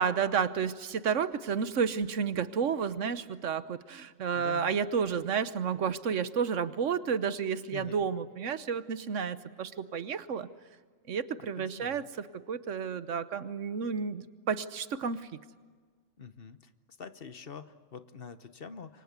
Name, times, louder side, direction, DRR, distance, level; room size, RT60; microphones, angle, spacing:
voice 1, 0.0-10.5 11.1-15.3, right 6 dB, 75° right, 13 dB, 1.3 m, -31 dB
voice 2, 4.3-4.7 7.7-8.1 11.6-12.1 16.2-16.6 17.0-19.0, left 6 dB, 50° left, 12 dB, 1.1 m, -46 dB
27.5 x 24.0 x 8.2 m, 1.6 s
omnidirectional pair, 1.3 m